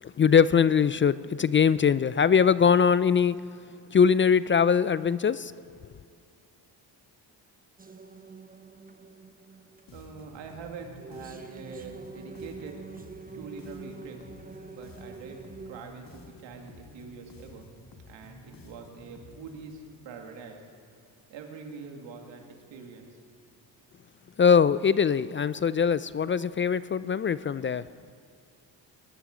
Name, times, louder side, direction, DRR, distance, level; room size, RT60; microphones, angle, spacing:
voice 1, 0.0-3.4 3.9-5.5 24.4-27.8, left 6 dB, 30° left, 17 dB, 0.4 m, -22 dB
sound 1, 7.8-15.8, right 4 dB, 20° right, 1.0 m, -46 dB
Bass guitar, 9.9-19.8, left 3 dB, 50° left, 2.1 m, -51 dB
voice 2, 9.9-12.8 13.3-14.2 14.7-15.4 15.7-17.7 18.1-20.6 21.3-22.4 22.7-23.1, right 5 dB, 90° right, 3 dB, 2.1 m, -44 dB
20.0 x 11.5 x 5.1 m, 2.3 s
cardioid pair, 70°, 43 cm